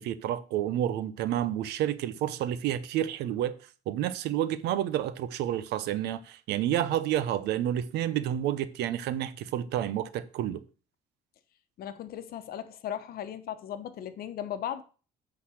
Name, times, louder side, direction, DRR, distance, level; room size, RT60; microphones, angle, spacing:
voice 1, 0.0-3.6 3.9-10.6, right 11 dB, 80° right, 0.8 m, -30 dB
voice 2, 11.8-14.8, left 10 dB, 65° left, 1.0 m, -37 dB
8.6 x 4.1 x 6.3 m
cardioid pair, 110°, 17 cm